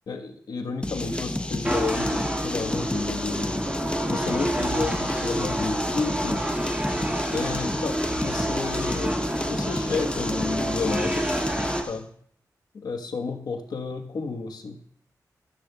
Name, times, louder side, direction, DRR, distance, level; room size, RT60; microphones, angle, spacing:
voice 1, 0.1-3.7 4.1-6.4 7.3-11.3 11.8-12.1 12.7-14.8, left 4 dB, 80° left, 5 dB, 1.2 m, -31 dB
sound 1, 0.8-12.0, left 1 dB, 15° left, 0.6 m, -31 dB
sound 2, 1.6-11.8, right 1 dB, 15° right, 1.6 m, -29 dB
13.0 x 10.5 x 2.3 m, 0.64 s
wide cardioid pair, 75°, 7 cm